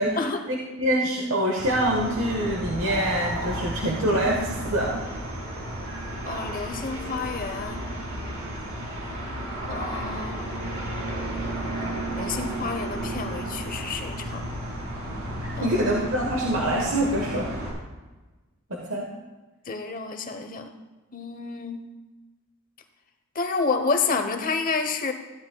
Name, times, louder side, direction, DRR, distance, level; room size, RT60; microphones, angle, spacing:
voice 1, 0.5-5.1 15.6-17.5 18.7-19.1, right 1 dB, 65° right, -1 dB, 1.2 m, -25 dB
sound 1, 1.6-17.7, right 1 dB, 90° right, 3.7 m, -33 dB
voice 2, 6.2-7.9 9.7-10.5 12.2-14.5 15.6-15.9 19.7-20.7 21.1-21.8 23.3-25.1, left 4 dB, 40° left, 6 dB, 0.9 m, -29 dB
14.5 x 11.0 x 2.3 m, 1.2 s
head